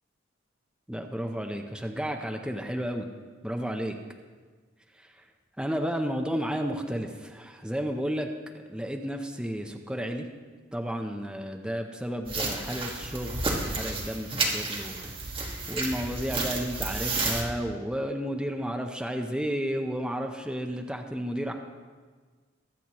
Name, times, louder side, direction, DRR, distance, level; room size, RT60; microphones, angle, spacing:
voice 1, 0.9-3.1 3.4-4.0 5.0-5.1 5.6-8.3 8.7-10.3 10.7-13.4 13.8-15.1 15.7-21.5, equal, 5° right, 3 dB, 0.7 m, -32 dB
sound 1, 12.3-17.4, right 3 dB, 25° right, 1.6 m, -31 dB
22.0 x 7.9 x 3.0 m, 1.5 s
head